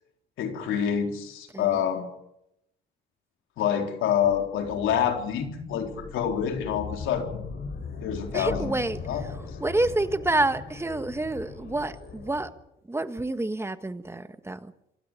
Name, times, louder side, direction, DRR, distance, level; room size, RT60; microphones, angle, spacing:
voice 1, 0.4-2.0 3.6-7.3 8.0-8.8 9.1-9.6, left 8 dB, 90° left, 4 dB, 4.0 m, -27 dB
sound 1, 4.2-12.5, left 4 dB, 65° left, 6.7 m, -40 dB
voice 2, 8.3-9.0 9.6-12.5 12.9-14.7, right 2 dB, 15° right, 10 dB, 1.5 m, -28 dB
27.0 x 12.5 x 8.8 m, 0.82 s
cardioid pair, 90°, 20 cm